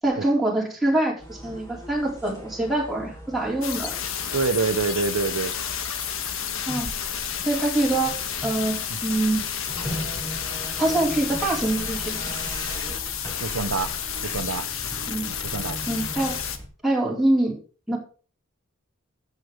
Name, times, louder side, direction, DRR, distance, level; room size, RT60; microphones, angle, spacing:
voice 1, 0.0-3.9 6.7-6.9 7.5-8.1 8.4-9.4 10.8-12.3 15.1-15.3 15.9-16.4 16.8-17.6 17.9-18.0, right 2 dB, ahead, 4.1 m, -24 dB
sound 1, 1.2-16.7, equal, 15° left, 3.8 m, -39 dB
sound 2, 3.6-16.6, left 8 dB, 70° left, 1.3 m, -31 dB
voice 2, 4.3-5.5 13.4-13.9 14.2-14.7 15.3-15.9, right 4 dB, 85° right, 0.8 m, -26 dB
11.0 x 8.0 x 5.0 m
head